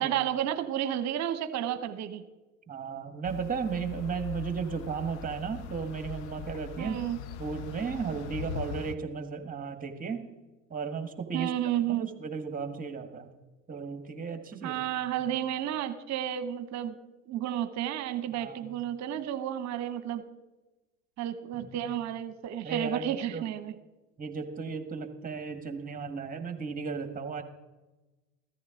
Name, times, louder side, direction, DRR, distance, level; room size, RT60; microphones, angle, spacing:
voice 1, 0.0-2.2 6.8-7.2 11.3-12.1 14.6-17.0 17.3-20.2 21.2-23.7, right 11 dB, 45° right, 11 dB, 1.0 m, -31 dB
voice 2, 2.7-7.0 7.4-10.3 10.7-11.5 11.9-13.3 13.7-14.8 15.2-15.3 18.3-18.7 21.5-21.7 22.6-23.4 24.2-27.4, right 6 dB, 20° right, 7 dB, 1.8 m, -35 dB
sound 1, 3.2-9.0, left 8 dB, 65° left, 0.9 m, -41 dB
15.0 x 14.0 x 3.8 m, 1.1 s
hypercardioid pair, 75°, 37 cm